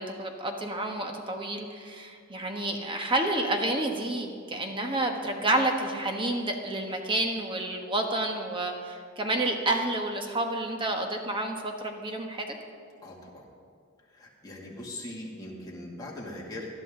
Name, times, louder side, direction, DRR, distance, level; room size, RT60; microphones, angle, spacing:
voice 1, 0.0-12.5, right 1 dB, 25° right, 3 dB, 1.3 m, -29 dB
voice 2, 13.0-13.4 14.2-16.7, left 1 dB, 20° left, -4 dB, 2.5 m, -40 dB
20.0 x 12.5 x 3.8 m, 2.2 s
head